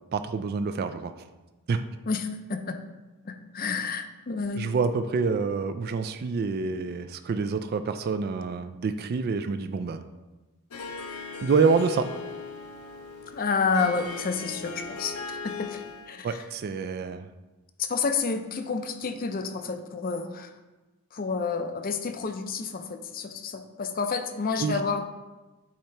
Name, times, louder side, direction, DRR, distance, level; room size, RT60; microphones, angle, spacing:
voice 1, 0.1-1.1 1.7-1.8 4.5-10.0 11.4-12.1 16.2-17.3 24.6-24.8, right 5 dB, 45° right, 10 dB, 0.3 m, -27 dB
voice 2, 2.1-2.8 3.2-4.6 13.3-15.8 16.1-16.4 17.8-20.5 21.1-25.0, left 5 dB, 40° left, 7 dB, 0.5 m, -30 dB
Harp, 10.7-16.2, left 4 dB, 90° left, 0.7 m, -39 dB
8.5 x 2.9 x 4.5 m, 1.1 s
head